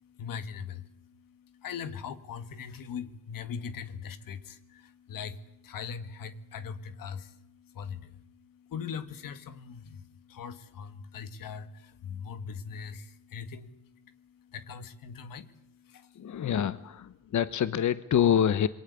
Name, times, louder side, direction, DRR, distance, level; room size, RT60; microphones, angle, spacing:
voice 1, 0.0-16.4 17.2-17.4, left 6 dB, 90° left, 12 dB, 1.7 m, -41 dB
voice 2, 16.1-18.7, left 9 dB, 60° left, 15 dB, 1.0 m, -26 dB
27.0 x 22.5 x 8.2 m, 0.81 s
cardioid pair, 100°, 33 cm